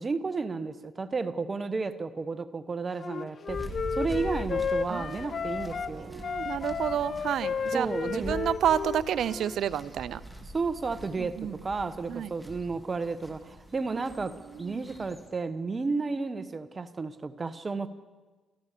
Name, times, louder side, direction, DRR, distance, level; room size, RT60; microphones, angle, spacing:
voice 1, 0.0-6.2 7.7-8.4 10.5-17.9, right 4 dB, 30° right, 12 dB, 1.3 m, -32 dB
Wind instrument woodwind instrument, 3.0-5.9 6.2-9.6, left 6 dB, 45° left, 0.7 m, -33 dB
sound 1, 3.5-15.3, right 1 dB, 5° right, 3.4 m, -43 dB
voice 2, 4.9-10.2 11.2-11.6 12.1-12.3 14.5-14.8, right 10 dB, 70° right, 16 dB, 0.7 m, -31 dB
29.0 x 14.0 x 6.9 m, 1.3 s
cardioid pair, 90°, 0 cm